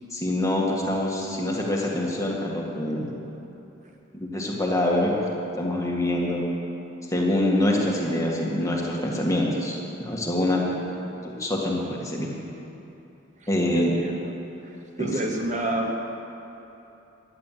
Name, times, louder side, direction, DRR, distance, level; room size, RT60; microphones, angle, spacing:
voice 1, 0.1-3.1 4.1-5.1 5.6-6.4 7.1-10.9 11.2-12.3 13.5-13.9 15.0-15.1, left 1 dB, 15° left, -2 dB, 1.9 m, -25 dB
voice 2, 13.4-14.3 14.6-15.9, right 2 dB, 35° right, 2 dB, 0.9 m, -30 dB
14.5 x 10.5 x 7.6 m, 3.0 s
head